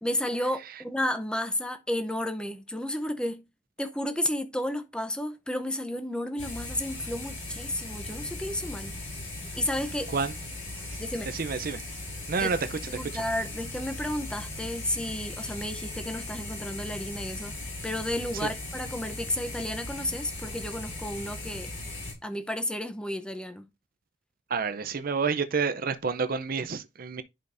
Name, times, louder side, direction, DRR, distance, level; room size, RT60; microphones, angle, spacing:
voice 1, 0.0-3.4 3.8-9.0 9.6-10.1 11.0-11.3 12.4-12.5 12.9-17.5 17.8-21.7 22.2-23.7, left 1 dB, 5° left, 0.7 m, -32 dB
sound 1, 6.4-22.1, left 2 dB, 45° left, 5.2 m, -38 dB
voice 2, 11.3-11.8 12.3-12.8 18.4-18.5 24.5-27.2, right 5 dB, 50° right, 0.6 m, -29 dB
11.0 x 5.1 x 2.6 m
head